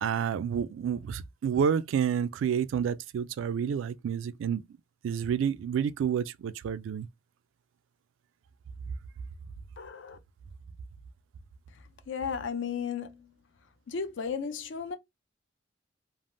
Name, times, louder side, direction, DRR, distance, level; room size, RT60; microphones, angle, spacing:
voice 1, 0.0-4.6 5.0-7.1, right 7 dB, 90° right, 0.3 m, -29 dB
voice 2, 9.8-10.2 12.1-13.3 13.9-15.0, left 6 dB, 70° left, 0.5 m, -34 dB
3.3 x 2.0 x 2.5 m
head